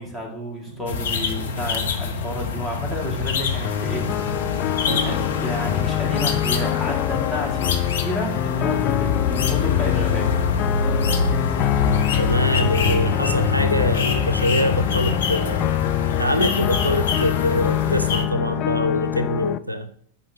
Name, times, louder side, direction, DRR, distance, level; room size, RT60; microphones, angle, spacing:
voice 1, 0.0-4.1 4.6-10.3, left 1 dB, 5° right, -1 dB, 2.1 m, -31 dB
sound 1, 0.6-19.2, right 3 dB, 70° right, 1.8 m, -40 dB
sound 2, 0.9-18.2, left 6 dB, 65° left, 0.9 m, -25 dB
sound 3, 3.6-19.6, left 13 dB, 35° left, 0.3 m, -26 dB
voice 2, 12.2-15.8 16.2-19.9, left 1 dB, 90° right, 8 dB, 0.5 m, -24 dB
10.5 x 5.2 x 2.9 m, 0.62 s
figure-of-eight pair, 90°, 0 cm